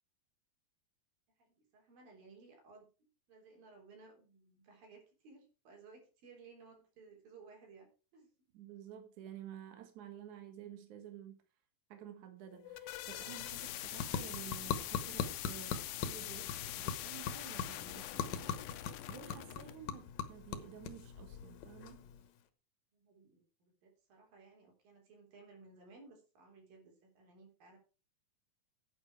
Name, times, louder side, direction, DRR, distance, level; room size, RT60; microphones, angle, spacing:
voice 1, 1.4-2.9 3.3-8.3 22.9-27.8, right 4 dB, 85° right, 5.3 m, -59 dB
voice 2, 8.5-11.4 11.9-22.0, right 10 dB, 65° right, 2.6 m, -52 dB
sound 1, 12.5-19.8, left 14 dB, 80° left, 2.4 m, -44 dB
sound 2, 13.0-22.5, left 7 dB, 65° left, 2.2 m, -42 dB
9.9 x 9.0 x 4.7 m
omnidirectional pair, 4.0 m